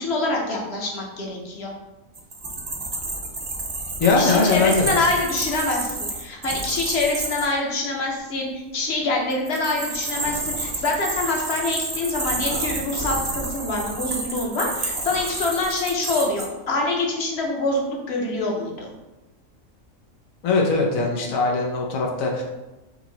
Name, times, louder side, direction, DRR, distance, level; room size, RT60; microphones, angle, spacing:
voice 1, 0.0-1.7 4.2-18.9, left 2 dB, 55° left, 0 dB, 1.1 m, -25 dB
sound 1, 2.1-7.5 9.3-16.5, right 2 dB, 35° right, 0.4 m, -30 dB
voice 2, 4.0-5.0 20.4-22.4, left 3 dB, 85° left, 0 dB, 1.2 m, -21 dB
4.5 x 2.9 x 4.0 m, 1.1 s
omnidirectional pair, 1.4 m